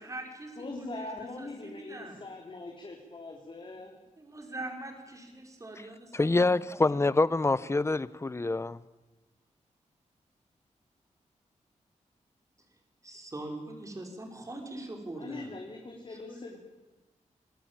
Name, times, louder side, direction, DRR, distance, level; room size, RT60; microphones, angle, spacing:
voice 1, 0.0-1.1 1.4-2.3 4.2-6.5 13.0-15.5 16.1-16.6, right 2 dB, 25° right, 5.4 m, -42 dB
voice 2, 0.6-4.0 15.1-16.6, left 2 dB, 40° left, 3.7 m, -42 dB
voice 3, 6.1-8.8, left 2 dB, 20° left, 0.8 m, -26 dB
27.0 x 21.0 x 9.1 m
wide cardioid pair, 130°, 13 cm